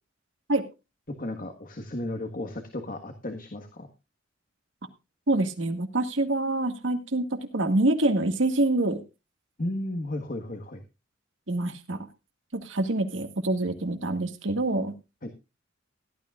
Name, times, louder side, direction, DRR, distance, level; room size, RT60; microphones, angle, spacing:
voice 1, 1.2-3.9 9.6-10.8 15.2-15.3, left 1 dB, 45° left, 5 dB, 1.6 m, -34 dB
voice 2, 5.3-9.0 11.5-12.1 12.5-14.9, right 2 dB, 75° right, 8 dB, 2.0 m, -26 dB
17.0 x 12.5 x 2.5 m, 0.28 s
head